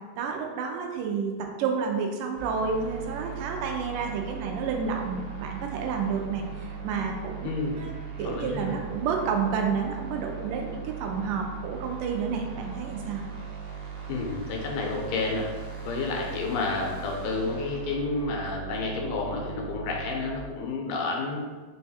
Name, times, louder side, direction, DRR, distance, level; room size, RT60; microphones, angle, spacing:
voice 1, 0.2-7.5 7.8-7.9 8.2-13.2, right 5 dB, 90° right, 2 dB, 2.2 m, -30 dB
sound 1, 2.4-20.4, right 7 dB, 70° right, 2.0 m, -39 dB
voice 2, 7.4-7.8 8.2-8.7 14.1-15.5 15.9-21.4, left 3 dB, 85° left, 0 dB, 2.2 m, -30 dB
5.5 x 2.3 x 4.1 m, 1.4 s
omnidirectional pair, 3.7 m